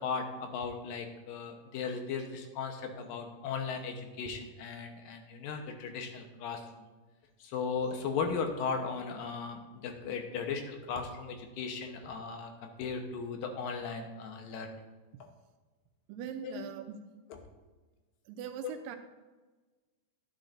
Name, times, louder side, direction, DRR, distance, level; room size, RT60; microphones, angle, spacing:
voice 1, 0.0-6.9 7.4-14.8 16.4-16.6, left 5 dB, 90° left, 4 dB, 2.8 m, -37 dB
voice 2, 16.1-17.0 18.3-19.0, right 8 dB, 90° right, 6 dB, 2.4 m, -41 dB
11.5 x 9.6 x 2.6 m, 1.3 s
omnidirectional pair, 3.9 m